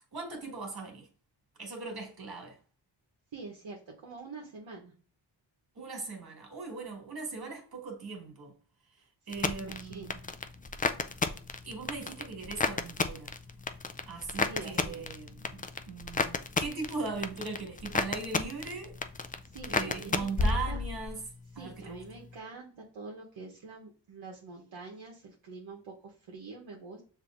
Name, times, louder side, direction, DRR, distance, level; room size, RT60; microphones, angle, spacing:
voice 1, 0.1-1.1 1.6-2.6 5.8-8.5 9.3-10.2 11.6-13.3 14.1-19.0 19.7-21.2 21.6-22.0, right 4 dB, 50° right, 1.9 m, -39 dB
voice 2, 3.3-4.9 9.3-10.3 14.1-15.1 19.4-20.8 21.5-27.0, right 3 dB, 70° right, 1.1 m, -46 dB
sound 1, 9.3-21.2 21.5-22.1, left 4 dB, 20° left, 0.4 m, -33 dB
6.6 x 2.8 x 2.5 m
cardioid pair, 60°, 47 cm